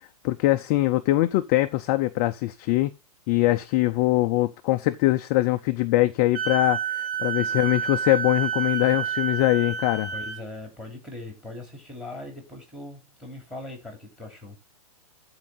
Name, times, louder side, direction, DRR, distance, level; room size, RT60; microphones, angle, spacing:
voice 1, 0.2-2.9 3.3-10.1, left 17 dB, 25° left, 0.4 m, -22 dB
Wind instrument woodwind instrument, 6.3-10.4, right 7 dB, 60° right, 2.5 m, -29 dB
voice 2, 10.1-14.6, left 2 dB, 5° right, 3.0 m, -40 dB
13.5 x 4.6 x 3.9 m
hypercardioid pair, 155°, 19 cm